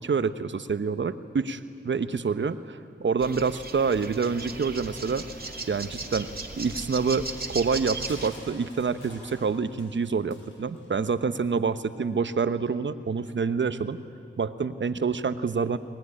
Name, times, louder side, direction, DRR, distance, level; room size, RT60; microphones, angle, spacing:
voice 1, 0.0-5.2 5.7-6.3 6.6-14.0 14.4-15.8, right 5 dB, 70° right, 12 dB, 1.0 m, -27 dB
sound 1, 3.2-8.3, right 3 dB, 50° right, 2.4 m, -37 dB
sound 2, 4.3-9.6, left 1 dB, 30° left, 3.8 m, -49 dB
Crushing, 8.1-11.0, left 1 dB, 80° left, 6.3 m, -51 dB
21.5 x 20.5 x 9.9 m, 2.4 s
cardioid pair, 45°, 20 cm